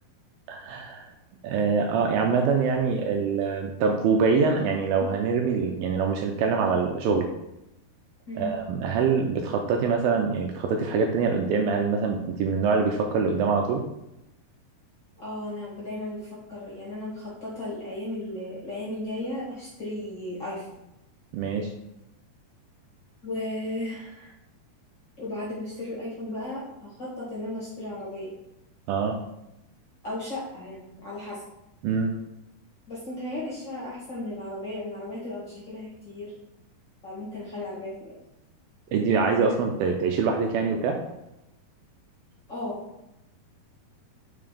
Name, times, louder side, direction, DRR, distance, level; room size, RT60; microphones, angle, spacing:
voice 1, 0.5-1.1 1.4-7.3 8.4-13.8 21.3-21.7 28.9-29.2 31.8-32.1 38.9-41.0, right 5 dB, 80° right, 3 dB, 2.2 m, -24 dB
voice 2, 8.3-8.6 15.2-20.8 23.2-24.3 25.2-28.3 30.0-31.4 32.9-36.3 37.0-38.1 42.5-42.8, left 1 dB, 35° left, -7 dB, 2.0 m, -35 dB
5.7 x 5.2 x 5.0 m, 0.88 s
omnidirectional pair, 4.6 m